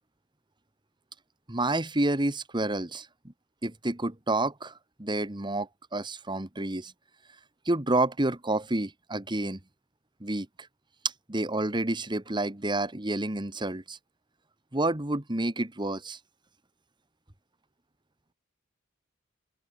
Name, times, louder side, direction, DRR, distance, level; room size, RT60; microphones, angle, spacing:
voice 1, 1.5-3.1 3.6-4.7 5.0-6.9 7.6-9.6 10.2-10.5 11.3-14.0 14.7-16.2, right 2 dB, 25° right, 1.7 m, -29 dB
open air
head